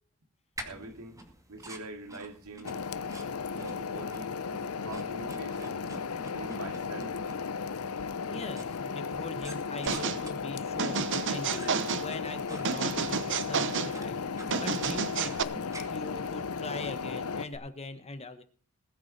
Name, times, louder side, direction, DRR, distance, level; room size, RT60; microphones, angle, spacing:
sound 1, 0.6-17.6, right 1 dB, 15° right, 2.2 m, -49 dB
voice 1, 0.6-1.2 1.5-2.8 3.5-4.4 4.8-5.8 6.3-7.1, right 2 dB, 85° right, 2.5 m, -44 dB
sound 2, 2.6-17.5, left 5 dB, 75° left, 0.7 m, -35 dB
voice 2, 8.3-11.0 11.3-18.4, left 2 dB, 30° left, 1.3 m, -41 dB
sound 3, 9.9-10.2 10.8-12.1 12.6-13.9 14.5-15.4, right 6 dB, 55° right, 0.9 m, -30 dB
20.5 x 8.6 x 4.3 m
head